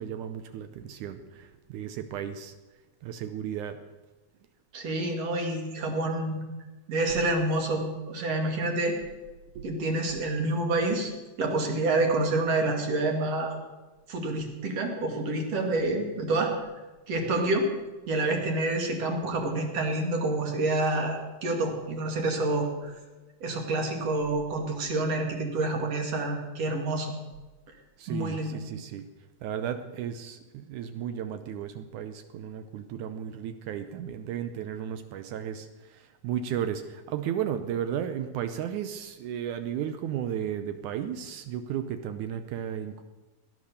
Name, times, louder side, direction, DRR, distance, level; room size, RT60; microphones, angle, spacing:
voice 1, 0.0-2.5 3.0-3.8 9.6-9.8 17.2-17.4 19.2-19.5 19.9-20.0 20.8-20.9 28.0-29.1 29.4-43.0, right 9 dB, 75° right, 9 dB, 2.0 m, -34 dB
voice 2, 4.7-6.4 6.9-9.0 9.6-11.1 11.4-13.6 14.1-16.5 17.1-17.7 18.1-22.9 23.4-27.2 28.1-28.6, right 2 dB, 50° right, 2 dB, 3.0 m, -28 dB
17.5 x 11.0 x 6.7 m, 1.2 s
omnidirectional pair, 4.0 m